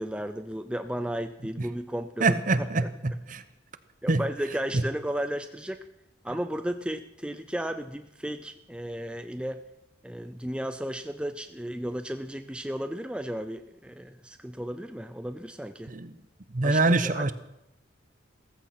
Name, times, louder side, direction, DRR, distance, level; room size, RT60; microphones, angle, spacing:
voice 1, 0.0-2.7 4.0-5.8 6.2-9.6 10.0-15.9 16.6-17.3, equal, 5° right, 8 dB, 0.5 m, -34 dB
voice 2, 2.2-3.4 4.1-4.2 4.7-4.8 15.9-16.1 16.5-17.3, right 3 dB, 40° right, 13 dB, 0.9 m, -24 dB
16.0 x 14.5 x 5.9 m, 0.84 s
head